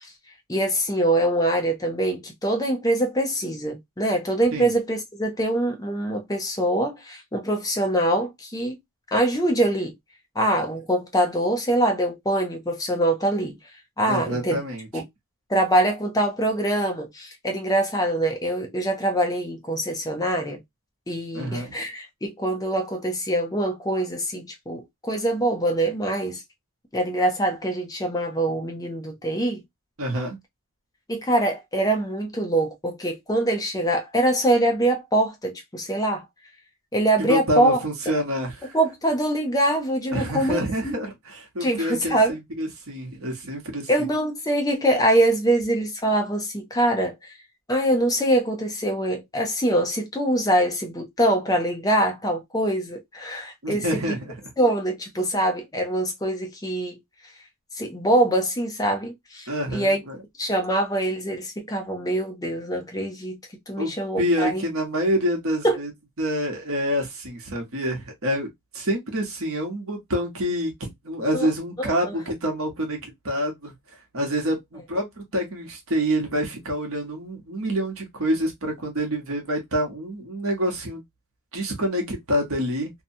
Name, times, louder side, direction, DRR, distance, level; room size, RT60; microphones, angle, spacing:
voice 1, 0.5-8.8 9.1-9.9 10.4-13.6 14.0-14.6 14.9-15.0 15.5-20.6 21.1-26.4 26.9-29.6 31.1-36.3 36.9-37.8 38.1-38.2 38.7-40.9 41.6-42.4 43.9-47.3 47.7-54.0 54.6-57.0 57.7-60.0 60.4-63.4 63.7-64.6 65.6-65.8 71.3-71.5 71.8-72.1, right 1 dB, 15° left, 0.6 m, -24 dB
voice 2, 14.1-14.9 21.3-21.7 30.0-30.4 37.2-38.8 40.1-44.1 53.6-54.3 59.5-60.2 63.8-63.9 64.2-65.9 66.2-68.5 68.7-73.7 74.1-81.0 81.5-82.9, equal, 65° right, 1.0 m, -27 dB
2.7 x 2.2 x 2.6 m
head